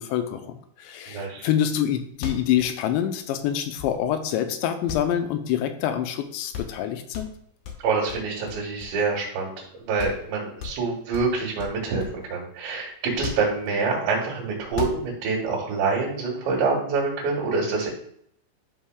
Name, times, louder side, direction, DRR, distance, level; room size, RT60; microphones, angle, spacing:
voice 1, 0.0-7.3, left 10 dB, 85° left, 7 dB, 2.9 m, -26 dB
voice 2, 1.1-1.5 7.8-17.9, right 4 dB, 85° right, -3 dB, 3.8 m, -26 dB
sound 1, 2.1-4.3 4.9-5.9 6.2-6.3 6.5-6.8 7.1-9.3 9.6-9.7 10.0-10.3 10.6-12.3 13.1-14.0 14.6-15.4, left 7 dB, 70° left, 2.0 m, -37 dB
11.0 x 6.0 x 2.3 m, 0.68 s
omnidirectional pair, 5.0 m